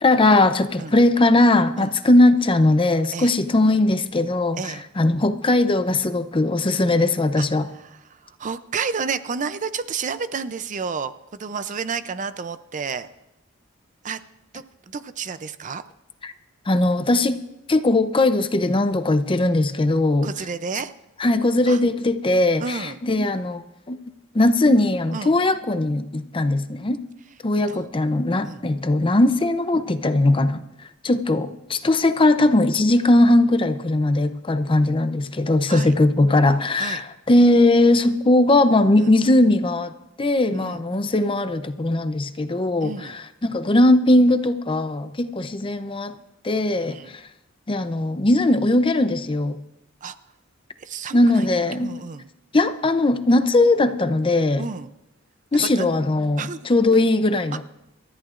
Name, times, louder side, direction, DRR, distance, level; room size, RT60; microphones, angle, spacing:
voice 1, 0.0-7.7 16.2-16.3 16.7-17.4 17.7-20.3 21.2-23.6 23.9-24.0 24.3-27.0 27.4-30.6 31.0-39.9 40.2-46.1 46.4-47.2 47.7-49.6 51.1-51.9 52.5-54.7 55.5-57.6, left 2 dB, 25° left, 11 dB, 0.6 m, -19 dB
voice 2, 7.7-13.1 14.0-14.2 14.5-15.8 20.2-20.9 21.7-21.8 22.6-23.0 25.1-25.4 27.7-27.8 28.4-28.6 35.7-35.9 36.8-37.0 39.0-39.1 40.5-40.8 42.8-43.1 46.7-47.1 50.0-50.2 50.8-51.5 51.8-52.3 54.6-54.9 55.6-55.9 56.4-56.6 56.9-57.1, right 5 dB, 35° right, 12 dB, 0.5 m, -31 dB
28.0 x 13.5 x 2.5 m, 0.90 s
head